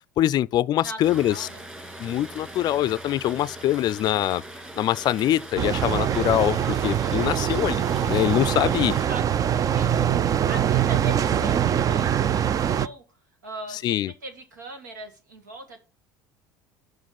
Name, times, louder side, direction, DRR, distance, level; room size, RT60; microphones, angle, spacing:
voice 1, 0.2-1.5 2.0-4.4 4.8-8.9 13.8-14.1, left 13 dB, 45° left, 0.4 m, -24 dB
voice 2, 0.8-1.6 8.9-10.1 10.5-13.0 13.4-15.8, right 2 dB, 90° right, 1.9 m, -40 dB
Rain, 1.0-9.0, right 1 dB, 10° right, 2.6 m, -41 dB
Brass instrument, 1.0-10.4, left 2 dB, 70° right, 5.2 m, -49 dB
sound 1, 5.6-12.9, right 9 dB, 40° right, 0.5 m, -23 dB
7.3 x 6.1 x 5.8 m
hypercardioid pair, 70°, 10 cm